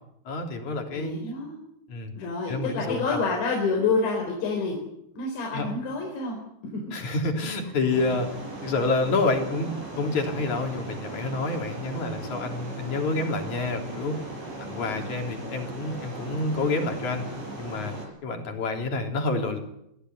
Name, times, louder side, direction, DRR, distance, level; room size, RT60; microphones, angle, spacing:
voice 1, 0.3-1.1 1.9-2.1 2.5-3.2 5.5-5.7 6.9-8.3 8.6-9.7 10.0-14.2 14.6-17.2 17.6-17.9 18.2-19.6, left 3 dB, 45° left, 3 dB, 4.5 m, -28 dB
voice 2, 0.9-1.5 2.2-4.8 5.2-6.4 6.7-6.9, left 4 dB, 85° left, 0 dB, 6.6 m, -28 dB
sound 1, 7.9-18.1, right 2 dB, 90° right, 7.9 m, -38 dB
26.0 x 16.0 x 9.7 m, 0.80 s
omnidirectional pair, 5.0 m